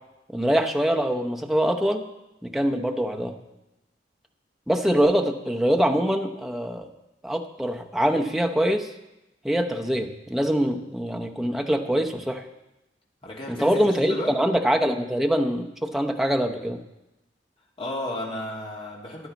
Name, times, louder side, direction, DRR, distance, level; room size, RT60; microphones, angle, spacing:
voice 1, 0.3-2.1 2.4-3.4 4.7-6.9 7.2-8.9 9.4-12.4 13.5-16.8, equal, ahead, 2 dB, 0.8 m, -24 dB
voice 2, 13.2-14.4 17.8-19.3, left 1 dB, 30° left, -3 dB, 2.6 m, -33 dB
14.5 x 11.0 x 4.1 m, 0.96 s
head